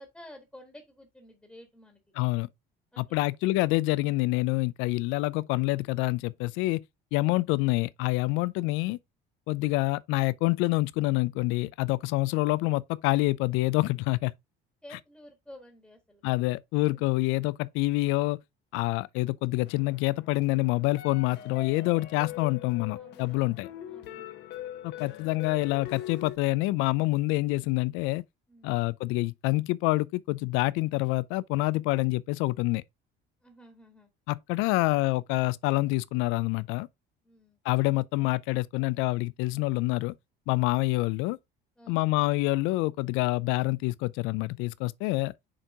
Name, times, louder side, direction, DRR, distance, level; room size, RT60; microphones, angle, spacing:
voice 1, 0.0-2.0 2.9-3.2 14.8-16.3 16.9-17.0 22.9-24.3 28.5-28.7 33.4-34.1 37.2-37.6 41.8-42.0, left 1 dB, 5° left, 1.4 m, -51 dB
voice 2, 2.1-2.5 3.0-6.8 7.1-9.0 9.5-14.3 14.9-15.0 16.2-18.4 18.7-23.7 24.8-28.2 28.6-32.8 34.3-36.9 37.6-40.1 40.5-41.4 41.9-45.3, left 21 dB, 85° left, 0.5 m, -27 dB
sound 1, 19.7-26.4, left 12 dB, 60° left, 1.0 m, -42 dB
6.5 x 4.5 x 3.5 m
cardioid pair, 160°, 20 cm